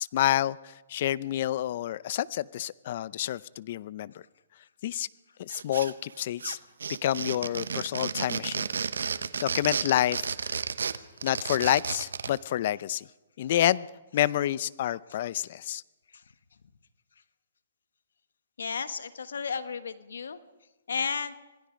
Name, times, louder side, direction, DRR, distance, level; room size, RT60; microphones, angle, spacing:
voice 1, 0.1-0.6 0.9-4.2 4.8-5.1 5.4-6.6 7.0-8.7 9.4-10.6 11.2-13.0 13.4-13.9 14.1-15.8, left 12 dB, 50° left, 20 dB, 0.6 m, -28 dB
sound 1, 5.5-6.1 6.4-12.4, right 6 dB, 90° right, 1.0 m, -32 dB
voice 2, 18.6-20.4 20.9-21.4, left 6 dB, 85° left, 12 dB, 1.3 m, -33 dB
26.5 x 19.0 x 5.2 m, 1.1 s
hypercardioid pair, 150°, 0 cm